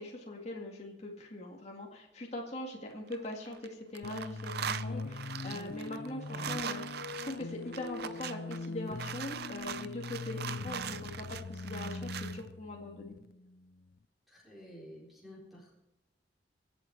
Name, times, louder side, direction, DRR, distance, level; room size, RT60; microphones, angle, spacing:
voice 1, 0.0-6.8 7.1-13.2, left 1 dB, 40° left, -1 dB, 2.2 m, -42 dB
sound 1, 2.9-3.7 3.9-12.4, right 8 dB, 60° right, 0.6 m, -41 dB
sound 2, 4.0-13.9, left 3 dB, 55° left, 0.5 m, -42 dB
voice 2, 14.3-15.7, equal, ahead, -6 dB, 4.2 m, -51 dB
24.0 x 8.6 x 4.7 m, 0.91 s
head